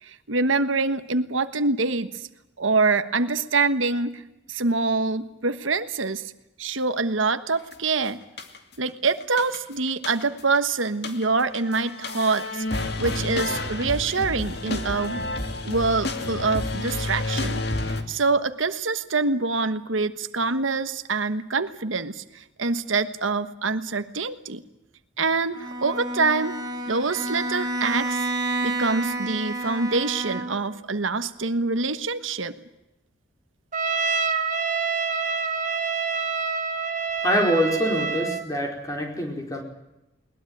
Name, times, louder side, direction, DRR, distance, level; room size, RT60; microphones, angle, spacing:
voice 1, 0.0-2.3 2.6-4.2 4.5-6.3 6.6-8.2 8.8-15.2 15.6-17.6 18.1-24.6 25.2-26.6 26.9-28.2 28.6-32.5, right 3 dB, 85° right, 11 dB, 1.4 m, -25 dB
sound 1, 7.7-7.9 8.4-8.9 9.2-10.6 10.9-18.0, left 2 dB, 55° left, 2.5 m, -30 dB
Bowed string instrument, 25.5-30.8, right 2 dB, 20° right, 2.9 m, -30 dB
Trumpet, 33.7-38.5, right 5 dB, 40° right, 2.0 m, -26 dB
voice 2, 37.2-39.6, equal, 15° left, 2 dB, 4.7 m, -25 dB
21.5 x 20.0 x 9.3 m, 0.94 s
head